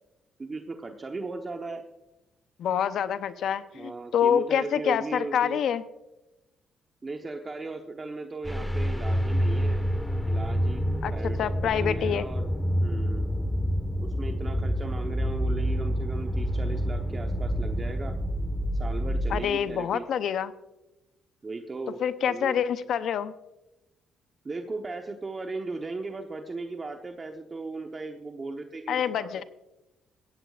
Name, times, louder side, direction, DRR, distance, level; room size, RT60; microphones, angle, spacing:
voice 1, 0.4-1.8 3.7-5.6 7.0-9.9 10.2-12.5 12.8-13.3 13.9-18.1 18.8-20.0 21.4-22.0 22.3-22.6 24.4-29.4, right 3 dB, 30° right, 4 dB, 1.0 m, -37 dB
voice 2, 2.6-5.8 11.0-11.1 11.4-12.3 19.3-20.5 22.0-23.3 28.9-29.4, left 8 dB, 70° left, 12 dB, 0.7 m, -26 dB
sound 1, 8.4-19.4, equal, 5° left, 1.4 m, -28 dB
16.5 x 15.5 x 2.5 m, 0.97 s
cardioid pair, 90°, 0 cm